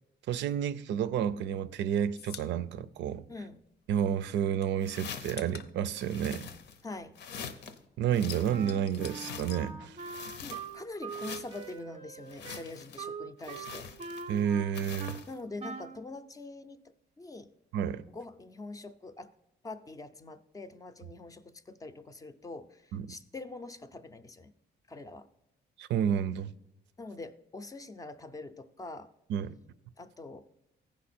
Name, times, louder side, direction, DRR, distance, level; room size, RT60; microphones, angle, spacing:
voice 1, 0.3-3.2 3.9-6.5 8.0-10.0 14.3-15.2 17.7-18.0 22.9-23.1 25.8-26.5 29.3-29.5, right 9 dB, 90° right, 0.5 m, -30 dB
sound 1, 1.1-3.9 4.2-7.5 7.8-10.4 10.7-11.8, left 9 dB, 65° left, 0.5 m, -49 dB
voice 2, 3.3-3.6 6.8-7.2 10.4-13.9 15.3-17.5 18.1-19.3 19.6-24.5 24.9-25.3 27.0-29.1 30.0-30.5, left 2 dB, 20° left, 0.4 m, -44 dB
sound 2, 4.8-5.5 6.0-6.8 7.2-7.8 8.1-9.7 10.0-10.8 11.1-11.7 12.3-13.0 13.4-14.4 14.7-15.3, left 6 dB, 85° left, 0.9 m, -44 dB
Wind instrument woodwind instrument, 8.5-15.3 15.6-16.0, right 5 dB, 35° right, 0.5 m, -43 dB
15.0 x 5.1 x 4.3 m
cardioid pair, 150°, 18 cm